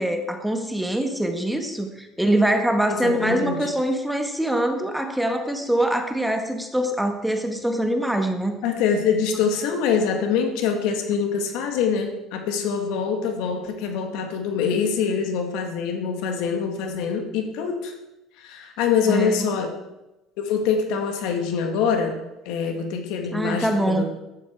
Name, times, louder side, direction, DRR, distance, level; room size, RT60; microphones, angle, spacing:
voice 1, 0.0-8.6 19.1-19.5 23.3-24.0, right 1 dB, 5° right, 5 dB, 1.6 m, -24 dB
voice 2, 2.9-3.7 8.6-17.9 18.4-19.7 20.4-22.2 22.5-24.0, left 6 dB, 80° left, 4 dB, 2.3 m, -24 dB
14.5 x 12.0 x 4.8 m, 0.95 s
cardioid pair, 140°, 0 cm